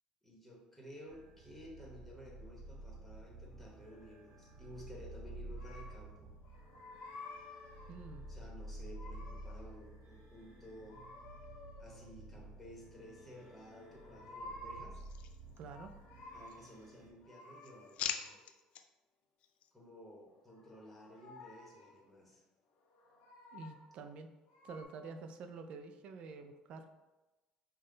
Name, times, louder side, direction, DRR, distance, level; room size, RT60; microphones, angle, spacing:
voice 1, 0.2-6.3 8.3-11.0 11.8-15.0 16.3-18.4 19.7-22.4, equal, 5° left, -3 dB, 1.0 m, -54 dB
sound 1, 1.1-17.1, right 1 dB, 70° right, 1.4 m, -51 dB
sound 2, 5.5-6.1 6.4-8.1 8.7-9.9 10.9-12.2 13.8-15.0 15.5-16.7 17.2-18.5 20.3-22.0 22.8-24.0 24.5-24.8, left 2 dB, 80° left, 0.7 m, -53 dB
voice 2, 7.9-8.3 15.6-15.9 23.5-24.3 24.6-26.9, right 4 dB, 55° right, 7 dB, 0.4 m, -48 dB
sound 3, 14.9-16.0 16.4-17.1 17.4-18.8 19.4-19.7, left 9 dB, 55° left, 0.3 m, -44 dB
5.6 x 2.1 x 3.8 m, 1.1 s
cardioid pair, 150°, 2 cm